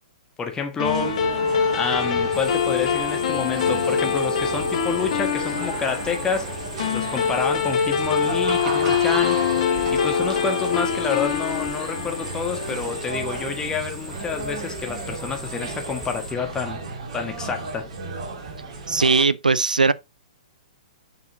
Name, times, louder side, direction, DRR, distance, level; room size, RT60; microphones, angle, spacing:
voice 1, 0.4-1.2 1.7-6.5 6.9-9.4 9.9-16.8 17.1-17.9, left 5 dB, 15° left, 1.5 m, -28 dB
sound 1, 0.8-13.5, left 6 dB, 55° left, 1.4 m, -24 dB
sound 2, 0.8-19.3, right 4 dB, 50° right, 2.2 m, -34 dB
sound 3, 2.3-16.3, equal, 15° right, 2.9 m, -39 dB
voice 2, 18.9-19.9, right 4 dB, 85° right, 0.4 m, -19 dB
6.9 x 6.1 x 2.7 m
figure-of-eight pair, 115°, 4 cm